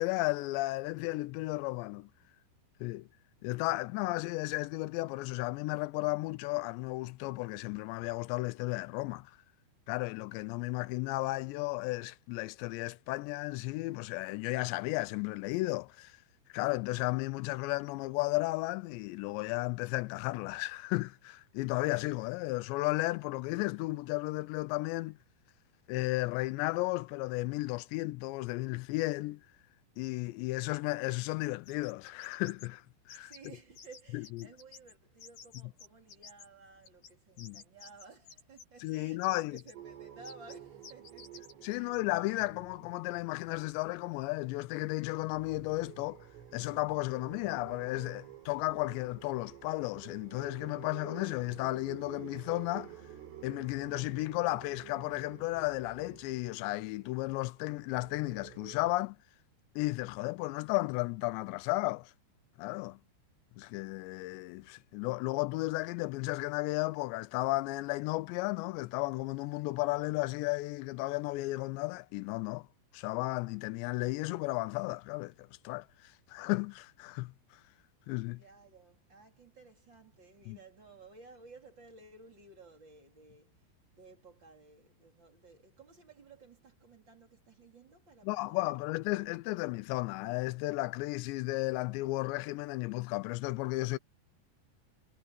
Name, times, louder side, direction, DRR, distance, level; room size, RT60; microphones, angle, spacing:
voice 1, 0.0-2.1 2.8-3.1 3.4-9.4 9.9-16.2 16.5-25.2 25.9-29.4 30.0-33.3 34.1-34.2 37.4-37.6 38.8-39.6 41.6-46.3 46.5-52.9 53.4-59.2 59.8-62.1 62.6-63.0 63.6-72.7 72.9-77.6 78.1-78.4 80.5-80.6 88.2-94.0, left 21 dB, 85° left, 2.5 m, -34 dB
sound 1, 31.4-32.7 33.1-33.5 33.8-34.9 35.2-36.5 36.8-38.9 39.2-39.7 40.2-40.6 40.8-42.0, left 6 dB, 60° left, 6.6 m, -53 dB
voice 2, 33.2-42.0 78.4-83.7 83.9-88.8, right 3 dB, 30° right, 3.0 m, -56 dB
sound 2, 39.7-44.9 45.1-58.9, right 10 dB, 85° right, 6.3 m, -51 dB
omnidirectional pair, 5.6 m